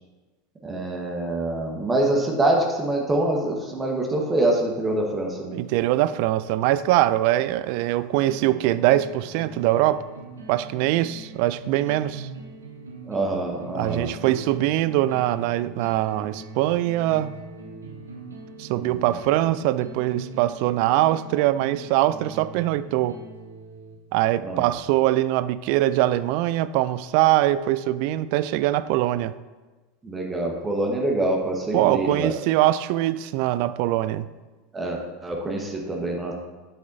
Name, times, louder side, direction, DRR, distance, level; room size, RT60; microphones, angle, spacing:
voice 1, 0.6-5.6 13.1-14.3 18.7-19.0 24.4-24.6 30.0-32.3 34.7-36.3, right 2 dB, 20° right, 1.3 m, -25 dB
voice 2, 5.5-10.0 10.5-12.3 13.7-17.3 18.6-23.2 24.1-29.4 31.7-34.3, right 14 dB, 60° right, 0.3 m, -22 dB
sound 1, 8.3-24.2, right 3 dB, 90° right, 1.0 m, -42 dB
7.9 x 7.4 x 2.7 m
hypercardioid pair, 90°, 0 cm